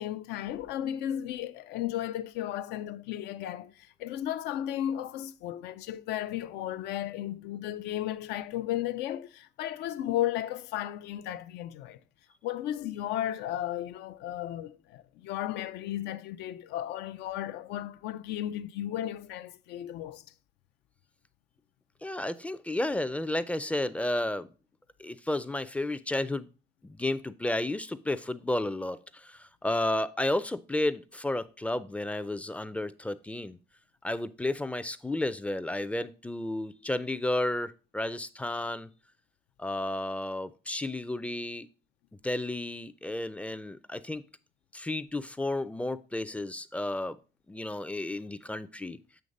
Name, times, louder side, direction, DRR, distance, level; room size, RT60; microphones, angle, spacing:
voice 1, 0.0-12.0 12.4-20.2, left 12 dB, 85° left, 0.5 m, -34 dB
voice 2, 22.0-24.5 25.0-26.5 26.8-33.6 34.0-38.9 39.6-41.7 42.2-44.2 44.7-47.2 47.5-49.0, left 1 dB, 10° left, 0.4 m, -32 dB
7.9 x 3.2 x 5.2 m
cardioid pair, 110°, 17 cm